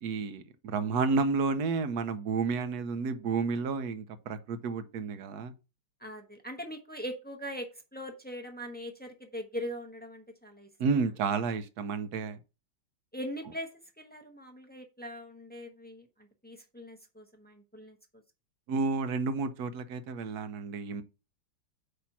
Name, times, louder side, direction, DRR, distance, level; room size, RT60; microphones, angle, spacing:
voice 1, 0.0-5.5 10.8-12.4 18.7-21.0, right 4 dB, 65° right, 1.2 m, -31 dB
voice 2, 6.0-10.7 13.1-13.7 14.0-16.1 16.4-18.0, equal, 10° left, 0.6 m, -41 dB
8.2 x 2.9 x 5.9 m
omnidirectional pair, 1.9 m